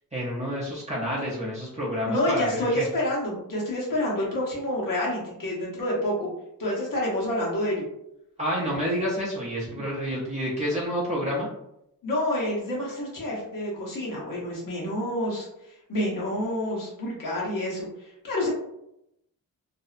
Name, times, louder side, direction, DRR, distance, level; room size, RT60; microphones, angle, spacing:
voice 1, 0.1-2.8 8.4-11.5, equal, 20° right, -7 dB, 0.6 m, -29 dB
voice 2, 2.1-6.1 6.6-7.8 12.0-18.5, left 1 dB, 65° left, -5 dB, 1.1 m, -28 dB
2.6 x 2.0 x 2.4 m, 0.82 s
wide cardioid pair, 105°, 35 cm